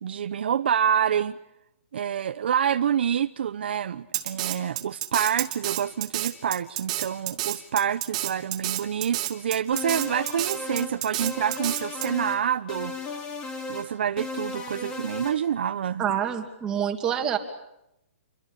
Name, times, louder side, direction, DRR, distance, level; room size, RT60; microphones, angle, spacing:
voice 1, 0.0-1.4 1.9-13.1 13.7-16.2, right 8 dB, 50° right, 1.0 m, -27 dB
Drum kit, 4.1-12.1, right 14 dB, 25° right, 2.6 m, -30 dB
sound 1, 9.7-10.9 11.2-12.4 12.7-13.9 14.2-15.4, left 3 dB, 15° left, 3.6 m, -35 dB
voice 2, 16.0-17.4, right 9 dB, 10° right, 2.7 m, -26 dB
29.0 x 24.5 x 8.4 m
hypercardioid pair, 175°, 7 cm